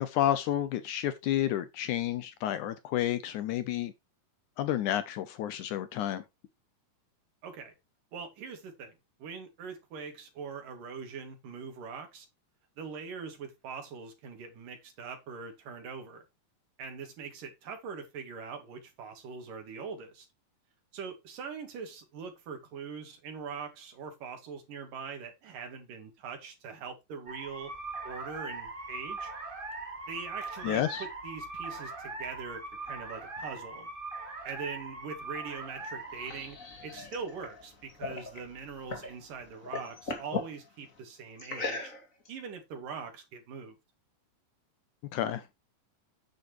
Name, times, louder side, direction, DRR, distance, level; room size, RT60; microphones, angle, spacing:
voice 1, 0.0-3.9 4.6-6.2 30.6-31.0 45.1-45.4, left 11 dB, 75° left, 2.1 m, -30 dB
voice 2, 7.4-7.7 8.1-8.9 9.2-12.3 12.8-16.2 16.8-20.3 20.9-27.7 28.0-29.3 30.1-33.9 34.4-41.9 42.3-43.8, right 5 dB, 70° right, 4.1 m, -42 dB
sound 1, 27.3-39.5, right 3 dB, 20° right, 1.8 m, -41 dB
sound 2, 35.8-39.2 39.5-40.5 41.4-42.3, left 3 dB, 25° left, 2.1 m, -38 dB
9.5 x 9.3 x 3.1 m
omnidirectional pair, 4.0 m